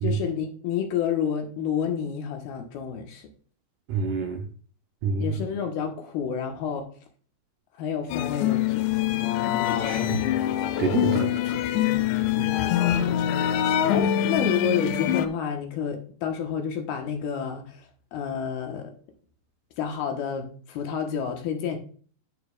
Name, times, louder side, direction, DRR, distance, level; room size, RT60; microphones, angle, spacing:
voice 1, 0.0-3.2 5.2-6.9 7.8-8.8 12.8-13.2 13.9-17.8 18.1-18.9 19.8-21.8, left 8 dB, 70° left, 2.8 m, -29 dB
voice 2, 3.9-4.4 5.0-5.3 9.8-10.2 10.8-11.6, right 5 dB, 90° right, 1.8 m, -27 dB
sound 1, 8.1-15.3, left 10 dB, 90° left, 3.0 m, -24 dB
10.5 x 9.3 x 2.4 m
omnidirectional pair, 5.0 m